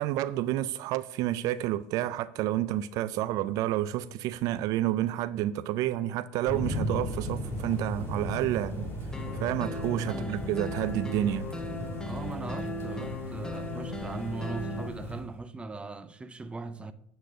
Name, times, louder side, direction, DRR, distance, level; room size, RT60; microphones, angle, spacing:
voice 1, 0.0-8.9 9.3-11.5, right 13 dB, 60° right, 0.4 m, -30 dB
sound 1, 6.5-15.2, equal, 35° left, 1.8 m, -36 dB
Bird / Rain, 7.4-15.5, right 2 dB, 35° right, 1.6 m, -52 dB
sound 2, 9.1-14.9, left 2 dB, 10° left, 1.1 m, -37 dB
voice 2, 10.1-10.4 12.0-16.9, right 3 dB, 15° right, 0.6 m, -39 dB
8.9 x 3.9 x 6.4 m
supercardioid pair, 90°, 7 cm